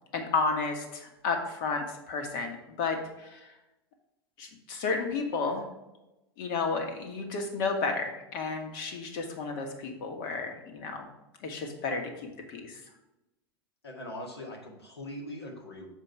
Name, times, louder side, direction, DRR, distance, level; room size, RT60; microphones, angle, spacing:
voice 1, 0.1-3.5 4.4-5.6 6.4-11.1 11.4-12.8, left 4 dB, 55° left, 3 dB, 1.6 m, -32 dB
voice 2, 13.8-15.9, left 1 dB, 90° left, -1 dB, 1.8 m, -41 dB
6.6 x 5.1 x 4.7 m, 0.96 s
hypercardioid pair, 90°, 13 cm